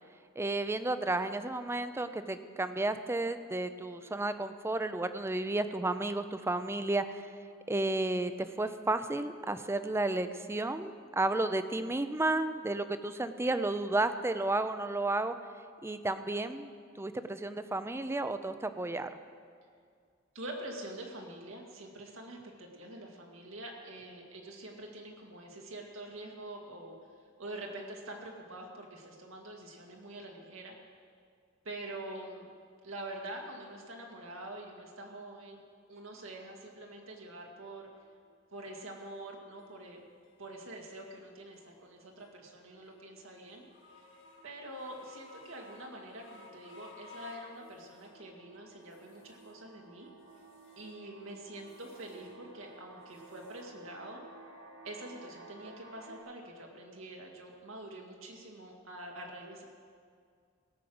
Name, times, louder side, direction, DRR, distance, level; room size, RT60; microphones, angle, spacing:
voice 1, 0.4-7.2 7.7-15.3 15.8-16.7 17.0-19.1, right 2 dB, 15° right, 11 dB, 0.5 m, -32 dB
voice 2, 20.3-27.0 27.4-30.7 31.6-32.5 32.8-35.6 35.9-37.9 38.5-40.0 40.4-43.7 43.9-44.1 44.4-50.1 50.8-54.2 54.8-59.6, right 1 dB, 85° right, 0 dB, 2.1 m, -45 dB
sound 1, 38.0-38.3 38.9-39.1 39.3-39.6 39.9-56.2, right 2 dB, 65° right, 2.0 m, -57 dB
sound 2, 38.9-39.0 39.6-39.7 40.2-40.3 40.9-41.1 41.5-41.7 42.2-42.3 42.9-43.0 43.5-48.2 48.7-49.6 50.0-50.9 51.3-52.3 52.6-53.6, left 3 dB, 65° left, 1.8 m, -56 dB
17.0 x 6.4 x 7.8 m, 2.2 s
head